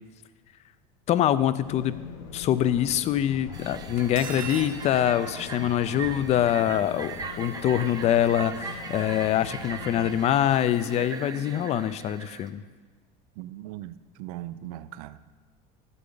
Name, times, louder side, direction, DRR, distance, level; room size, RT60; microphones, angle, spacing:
voice 1, 1.1-2.0 2.3-12.6, left 11 dB, 35° left, 0.4 m, -24 dB
sound 1, 1.6-10.3, left 7 dB, 90° left, 0.9 m, -41 dB
sound 2, 3.5-12.5, right 5 dB, 20° right, 0.6 m, -40 dB
Cutlery silverware, 4.0-4.8, right 7 dB, 45° right, 1.1 m, -37 dB
voice 2, 13.4-15.3, right 14 dB, 80° right, 0.5 m, -39 dB
12.0 x 8.4 x 3.9 m
supercardioid pair, 130°, 19 cm